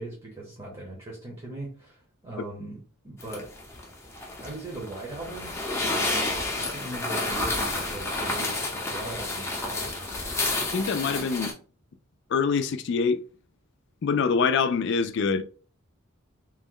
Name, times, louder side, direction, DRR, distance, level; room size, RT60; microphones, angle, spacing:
voice 1, 0.0-3.5 4.4-5.6 5.9-10.2, right 2 dB, 25° right, 0.9 m, -39 dB
sound 1, 3.2-11.5, left 2 dB, 15° left, 0.6 m, -30 dB
voice 2, 10.7-11.5 12.3-13.2 14.0-15.4, left 5 dB, 55° left, 0.4 m, -24 dB
3.0 x 2.1 x 3.7 m
head